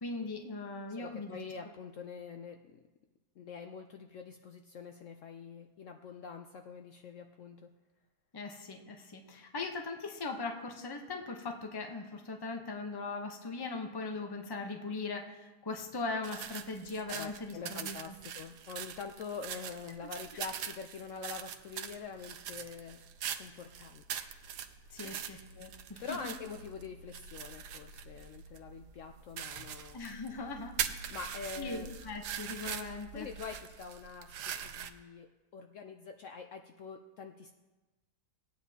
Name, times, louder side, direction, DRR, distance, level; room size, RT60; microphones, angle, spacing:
voice 1, 0.0-1.4 8.3-18.1 24.9-26.3 29.9-31.2 31.6-33.3, left 3 dB, 20° left, 3 dB, 0.7 m, -40 dB
voice 2, 1.0-2.8 3.4-7.7 17.1-24.3 25.0-25.4 26.0-30.0 31.1-31.9 32.6-32.8 33.1-37.5, left 5 dB, 65° left, 5 dB, 0.8 m, -45 dB
sound 1, 16.2-34.9, right 8 dB, 90° right, 1.3 m, -43 dB
19.5 x 9.0 x 2.8 m, 1.2 s
omnidirectional pair, 1.7 m